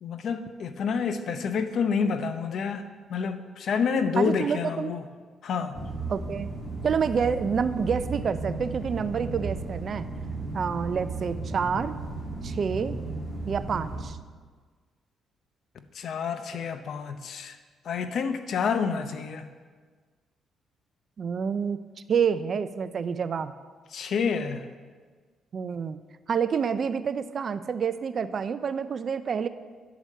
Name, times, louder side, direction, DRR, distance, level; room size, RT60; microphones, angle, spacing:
voice 1, 0.0-2.8 3.1-5.0 5.4-5.8 15.9-17.6 17.8-19.5 23.9-24.7, left 6 dB, 65° left, 9 dB, 0.7 m, -28 dB
voice 2, 4.2-4.9 6.1-6.5 6.8-10.1 10.5-12.0 12.4-13.0 13.5-14.2 21.2-21.8 22.1-23.5 25.5-26.0 26.3-29.5, right 6 dB, 50° right, 13 dB, 0.4 m, -28 dB
sound 1, 5.7-14.0, right 3 dB, 20° left, 3.0 m, -35 dB
10.5 x 4.8 x 6.6 m, 1.5 s
cardioid pair, 90°, 0 cm